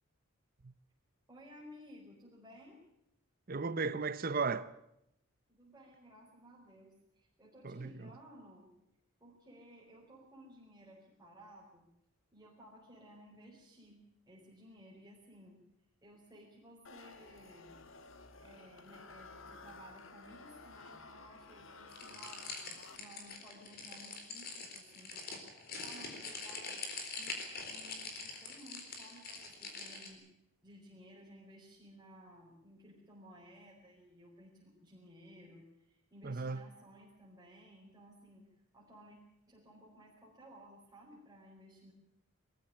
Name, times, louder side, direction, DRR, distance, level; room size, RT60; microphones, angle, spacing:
voice 1, 1.3-2.8 5.5-8.7 9.2-11.9 12.3-15.6 16.0-17.8 18.4-26.7 27.2-30.2 30.6-38.5 38.7-39.2 39.5-41.9, equal, 15° right, 4.8 m, -57 dB
voice 2, 3.5-4.7 7.6-8.1 36.2-36.6, right 4 dB, 40° right, 0.7 m, -35 dB
sound 1, 16.8-23.5, left 3 dB, 60° left, 1.6 m, -54 dB
sound 2, 21.9-30.1, left 3 dB, 45° left, 4.1 m, -44 dB
22.5 x 14.5 x 8.7 m
head